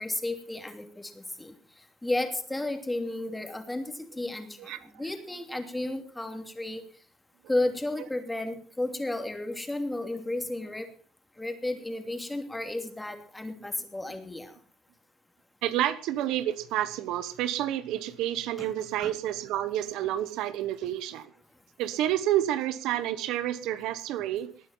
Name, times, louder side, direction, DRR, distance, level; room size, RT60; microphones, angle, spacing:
voice 1, 0.0-1.5 2.0-6.8 7.5-10.9 11.4-14.5 18.6-18.7 19.0-19.1, left 2 dB, 10° left, 6 dB, 2.9 m, -33 dB
voice 2, 15.6-21.3 21.8-24.5, right 12 dB, 80° right, 14 dB, 1.2 m, -29 dB
19.5 x 9.5 x 5.7 m, 0.43 s
cardioid pair, 105°, 0 cm